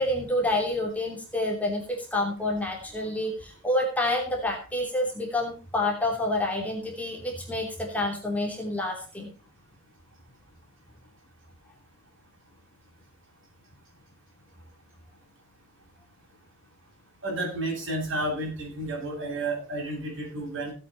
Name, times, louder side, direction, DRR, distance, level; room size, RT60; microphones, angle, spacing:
voice 1, 0.0-9.3, left 1 dB, 5° left, -1 dB, 2.9 m, -28 dB
voice 2, 17.2-20.7, right 1 dB, 60° right, -1 dB, 7.8 m, -31 dB
17.0 x 8.5 x 4.4 m, 0.37 s
head